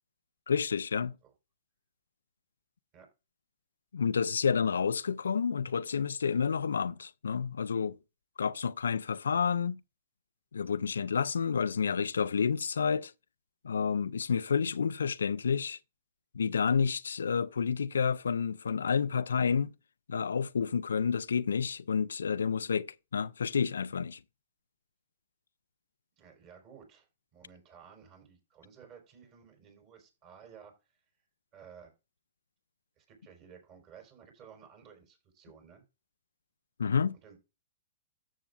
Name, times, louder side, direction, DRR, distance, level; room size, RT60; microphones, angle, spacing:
voice 1, 0.5-1.1 3.9-8.0 8.4-9.8 10.5-13.1 13.6-15.8 16.3-19.7 20.1-24.2 36.8-37.2, left 6 dB, 85° left, 0.4 m, -29 dB
voice 2, 26.2-27.1 27.3-30.7 31.5-31.9 33.0-35.8 37.2-37.4, right 7 dB, 35° right, 4.7 m, -54 dB
13.5 x 6.9 x 2.4 m
hypercardioid pair, 125°, 0 cm